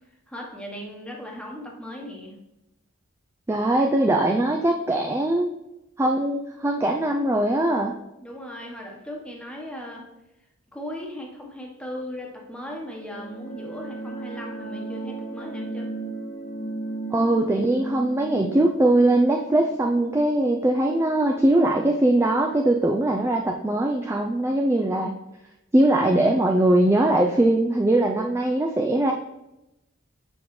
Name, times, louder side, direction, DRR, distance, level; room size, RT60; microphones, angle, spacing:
voice 1, 0.3-2.3 8.2-10.0 10.7-15.9, equal, 5° left, -1 dB, 1.0 m, -37 dB
voice 2, 3.5-5.5 6.0-7.9 17.1-25.1 25.7-29.1, right 1 dB, 15° right, 2 dB, 0.3 m, -21 dB
sound 1, 12.6-21.2, right 2 dB, 45° left, 1.1 m, -36 dB
7.0 x 5.2 x 3.1 m, 0.92 s
head